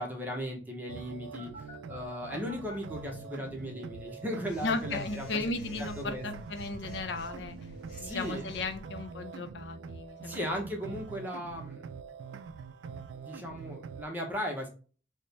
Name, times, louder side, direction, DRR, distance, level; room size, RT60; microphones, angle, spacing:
voice 1, 0.0-5.4 5.8-6.2 8.0-8.5 10.2-11.8 13.3-14.7, equal, 10° right, 0 dB, 0.7 m, -37 dB
sound 1, 0.9-14.0, right 5 dB, 90° right, 0.3 m, -44 dB
Telephone, 1.4-2.7 4.4-8.8, equal, 45° left, 1.4 m, -50 dB
voice 2, 4.6-7.6 8.0-10.4 10.9-11.0, left 3 dB, 75° left, 8 dB, 0.5 m, -35 dB
4.2 x 2.1 x 3.2 m, 0.38 s
head